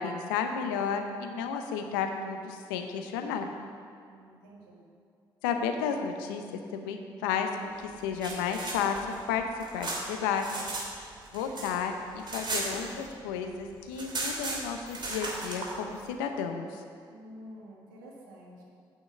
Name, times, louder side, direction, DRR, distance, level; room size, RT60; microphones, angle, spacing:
voice 1, 0.0-3.5 5.4-6.4 6.7-7.7 8.0-9.0 9.3-10.4 11.3-16.8, left 6 dB, 85° left, 5 dB, 0.7 m, -32 dB
voice 2, 4.0-4.8 17.1-18.6, equal, 85° right, -2 dB, 1.6 m, -49 dB
sound 1, 7.9-10.9 11.2-13.3 13.6-13.7 13.9-15.7, right 2 dB, 45° right, 2.7 m, -36 dB
8.8 x 6.1 x 7.4 m, 2.4 s
hypercardioid pair, 45°, 11 cm